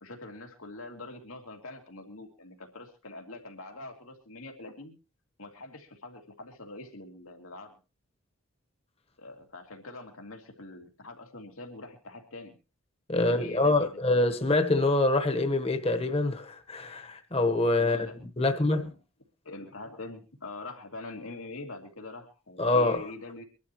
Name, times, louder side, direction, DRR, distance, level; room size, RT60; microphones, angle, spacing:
voice 1, 0.0-4.9 5.4-7.8 9.2-12.5 13.1-14.0 17.8-18.2 18.4-19.0 19.4-23.4, left 2 dB, 85° left, 2.6 m, -44 dB
voice 2, 13.1-18.0 18.4-18.9 22.6-23.1, left 2 dB, 30° left, 1.2 m, -25 dB
24.5 x 12.0 x 3.1 m
head